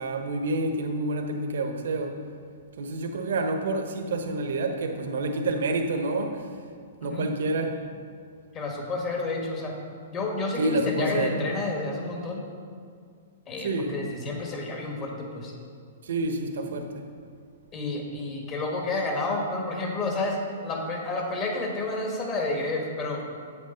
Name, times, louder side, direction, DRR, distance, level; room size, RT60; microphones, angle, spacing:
voice 1, 0.0-2.2 2.8-6.5 7.0-7.8 10.6-11.4 13.6-13.9 16.0-17.1, right 2 dB, 70° right, 5 dB, 1.0 m, -28 dB
voice 2, 8.5-9.8 10.1-12.4 13.5-15.5 17.7-23.2, left 2 dB, 30° left, 0 dB, 1.7 m, -30 dB
8.3 x 8.2 x 4.0 m, 2.2 s
hypercardioid pair, 130°, 0 cm